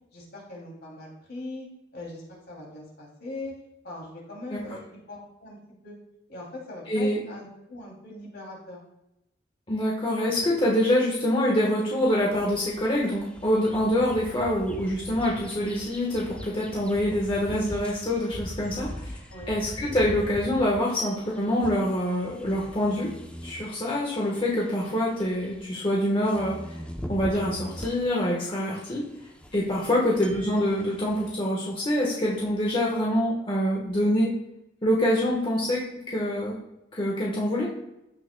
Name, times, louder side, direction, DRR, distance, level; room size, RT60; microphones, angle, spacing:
voice 1, 0.1-1.7 1.9-3.6 3.8-5.6 5.8-6.0 6.3-8.8 19.3-19.5 29.8-30.0, left 2 dB, 60° left, -3 dB, 2.9 m, -40 dB
voice 2, 6.9-7.2 9.7-19.2 19.5-23.1 23.4-26.6 27.1-29.0 29.5-34.3 34.8-36.6 36.9-37.7, left 1 dB, 30° left, -4 dB, 1.3 m, -25 dB
sound 1, 11.9-31.3, equal, 5° left, 0.7 m, -42 dB
15.5 x 6.0 x 2.3 m, 0.89 s
head